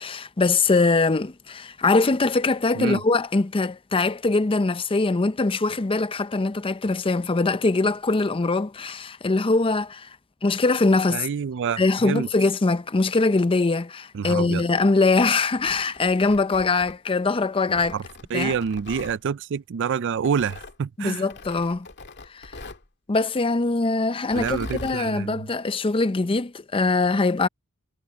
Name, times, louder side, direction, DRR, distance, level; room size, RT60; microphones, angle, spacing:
voice 1, 0.0-10.1 10.4-11.3 11.8-17.9 18.3-18.6 21.0-21.9 22.3-22.5 23.1-27.5, left 3 dB, 25° left, 0.5 m, -22 dB
voice 2, 11.1-12.3 14.1-14.7 17.9-18.0 18.3-21.3 24.4-25.5, right 6 dB, 55° right, 0.4 m, -27 dB
Tearing, 15.4-17.2 17.7-19.2 20.2-20.8 21.3-22.9 24.2-25.0, left 3 dB, 50° left, 2.2 m, -41 dB
head